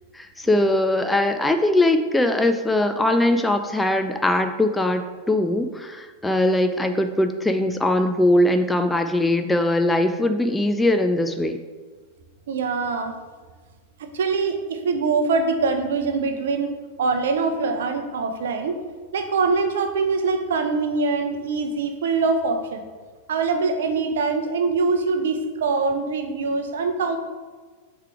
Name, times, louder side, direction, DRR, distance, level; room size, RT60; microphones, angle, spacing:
voice 1, 0.1-5.0 5.3-11.6, left 1 dB, 5° left, 7 dB, 0.4 m, -21 dB
voice 2, 12.5-13.1 14.1-18.8 19.1-22.8 23.3-27.2, right 4 dB, 60° right, 7 dB, 0.6 m, -23 dB
6.6 x 3.2 x 4.6 m, 1.4 s
figure-of-eight pair, 90°, 0 cm